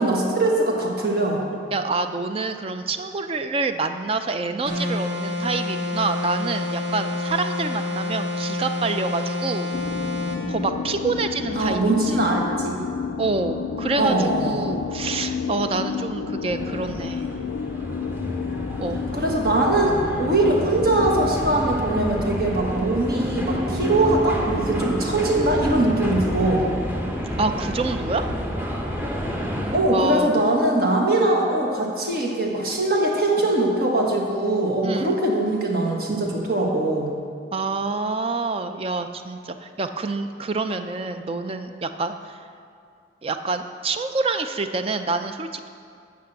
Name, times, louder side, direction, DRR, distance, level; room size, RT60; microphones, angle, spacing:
voice 1, 0.0-1.4 11.6-12.8 13.9-14.7 19.1-26.7 29.7-37.1, right 2 dB, 55° right, -1 dB, 1.5 m, -22 dB
voice 2, 1.7-9.7 10.5-12.2 13.2-17.3 18.8-19.0 27.4-28.2 29.9-30.3 34.8-35.1 37.5-42.4 43.2-45.7, right 3 dB, 30° right, 8 dB, 0.4 m, -27 dB
sound 1, 4.7-10.4, left 2 dB, 80° right, 1.9 m, -28 dB
sound 2, 9.7-21.4, left 6 dB, 75° left, 0.3 m, -31 dB
sound 3, 16.5-29.8, equal, 10° right, 0.9 m, -29 dB
8.3 x 6.1 x 7.6 m, 2.3 s
head